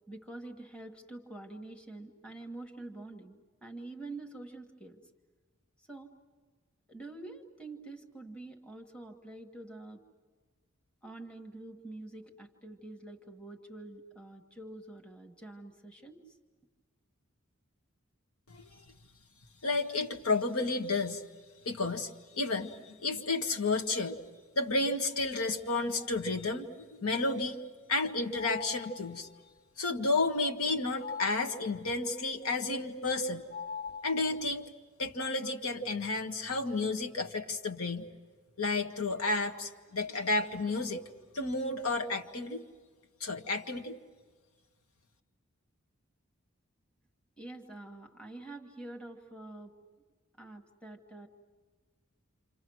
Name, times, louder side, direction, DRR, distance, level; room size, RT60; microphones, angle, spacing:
voice 1, 0.1-5.0 5.8-6.1 6.9-10.0 11.0-16.4 47.4-49.8 50.4-51.3, right 2 dB, 5° left, 2 dB, 1.4 m, -46 dB
voice 2, 18.5-18.8 19.6-21.2 21.7-24.2 24.6-27.6 27.9-29.3 29.8-33.4 34.0-34.7 35.0-38.1 38.6-41.0 41.3-42.6 43.2-44.0, left 3 dB, 85° left, 3 dB, 1.8 m, -31 dB
sound 1, 28.3-29.3 31.0-32.0 33.5-34.6, left 6 dB, 55° left, 0.8 m, -42 dB
28.5 x 27.5 x 6.3 m, 1.5 s
head